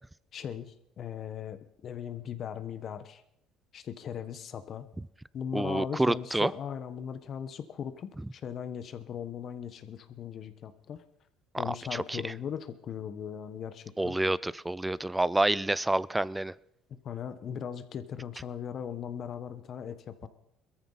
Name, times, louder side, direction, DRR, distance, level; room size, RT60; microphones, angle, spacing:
voice 1, 0.3-1.6 1.8-3.2 3.7-4.9 5.3-11.0 11.6-14.2 16.9-20.3, left 8 dB, 50° left, 11 dB, 1.3 m, -38 dB
voice 2, 5.5-6.5 11.7-12.2 14.0-16.5, right 1 dB, 10° right, 20 dB, 0.5 m, -28 dB
21.5 x 14.0 x 4.2 m, 0.79 s
supercardioid pair, 85°, 0 cm